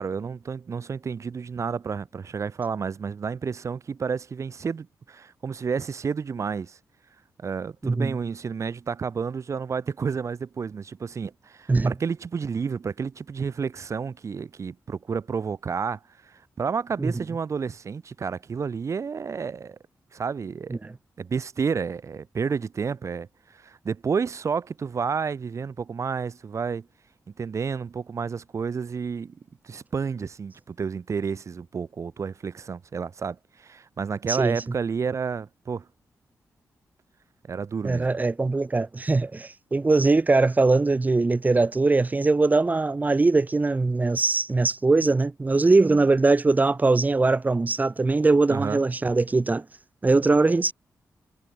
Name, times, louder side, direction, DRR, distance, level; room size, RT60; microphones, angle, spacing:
voice 1, 0.0-6.8 7.4-19.8 20.1-20.8 21.2-26.9 27.4-29.4 29.6-35.9 37.5-38.1 48.5-48.8, right 6 dB, 50° right, 5.8 m, -30 dB
voice 2, 7.8-8.2 11.7-11.9 17.0-17.1 20.8-20.9 34.3-34.6 37.8-49.6 50.0-50.7, right 3 dB, 25° right, 4.9 m, -21 dB
wide cardioid pair, 120°, 6 cm